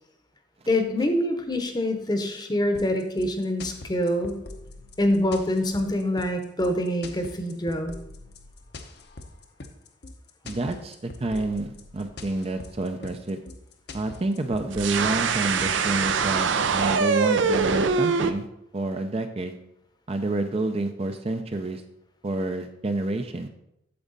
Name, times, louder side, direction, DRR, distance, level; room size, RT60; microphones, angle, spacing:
voice 1, 0.7-4.4 5.0-7.9, left 1 dB, 20° left, 6 dB, 0.9 m, -25 dB
sound 1, 2.7-16.3, left 2 dB, 55° left, 0.8 m, -43 dB
voice 2, 10.4-13.4 13.9-18.5 18.7-19.6 20.1-21.8 22.2-23.5, right 2 dB, 30° right, 7 dB, 0.5 m, -28 dB
sound 2, 14.7-18.3, right 5 dB, 75° right, 0.6 m, -23 dB
8.7 x 7.2 x 4.0 m, 0.81 s
head